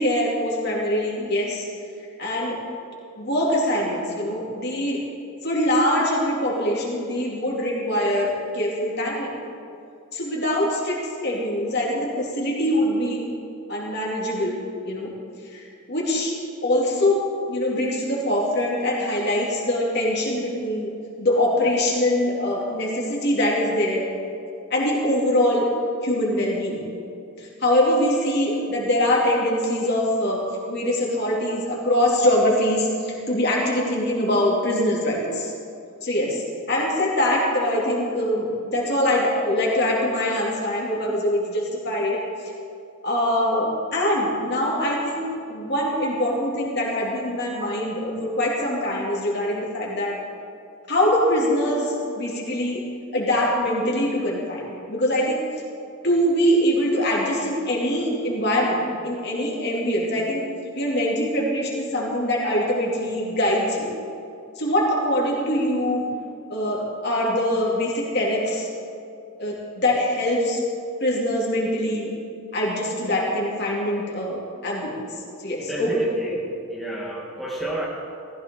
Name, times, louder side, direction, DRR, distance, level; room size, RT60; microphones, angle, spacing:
voice 1, 0.0-1.7 2.2-2.6 3.2-5.0 5.4-9.3 10.1-13.2 13.7-14.5 14.8-15.1 15.5-16.3 16.6-17.2 17.5-20.9 21.2-24.0 24.7-25.7 26.0-26.8 27.4-35.5 36.0-42.2 43.0-50.2 50.9-52.8 53.1-55.4 56.0-60.5 60.7-63.9 64.6-66.0 66.5-68.7 69.4-70.6 71.0-72.1 72.5-75.0 75.4-76.0, left 1 dB, 50° left, -3 dB, 2.8 m, -23 dB
voice 2, 75.6-77.9, right 1 dB, ahead, -4 dB, 1.4 m, -30 dB
15.0 x 14.5 x 3.9 m, 2.5 s
head